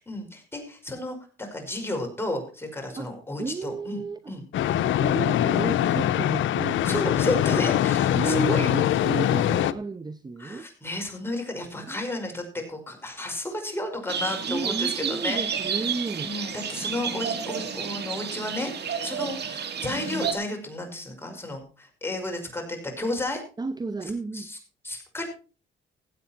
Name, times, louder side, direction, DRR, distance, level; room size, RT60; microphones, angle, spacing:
voice 1, 0.0-4.0 4.3-4.4 6.8-8.7 10.4-15.4 16.2-23.4 24.3-24.6 24.8-25.3, left 1 dB, 10° left, 5.3 m, -32 dB
voice 2, 3.4-4.3 4.9-7.3 8.1-10.7 11.8-12.0 14.5-16.3 23.6-24.5, right 4 dB, 20° right, 0.8 m, -33 dB
sound 1, 4.5-9.7, left 11 dB, 75° left, 0.8 m, -23 dB
sound 2, 14.1-20.3, right 7 dB, 60° right, 2.4 m, -31 dB
16.5 x 8.2 x 4.4 m
cardioid pair, 90°, 20 cm